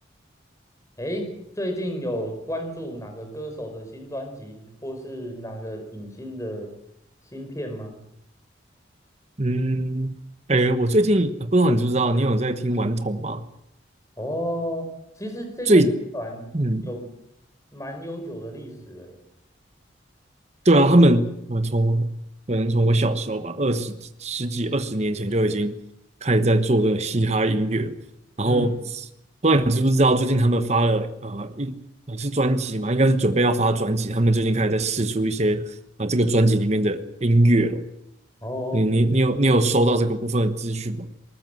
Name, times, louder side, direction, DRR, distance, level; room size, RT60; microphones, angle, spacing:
voice 1, 1.0-6.7 7.3-8.0 14.2-14.9 15.2-16.5 16.8-17.1 17.7-19.2 28.4-28.7 38.4-38.9, equal, 15° left, 5 dB, 4.7 m, -32 dB
voice 2, 9.4-10.1 10.5-13.4 15.7-15.9 16.5-16.9 20.6-22.1 22.5-25.8 26.2-27.9 28.4-28.7 29.4-31.7 32.1-35.6 36.0-37.8 38.7-41.1, right 1 dB, 35° right, 9 dB, 1.2 m, -21 dB
21.0 x 19.0 x 7.9 m, 0.79 s
head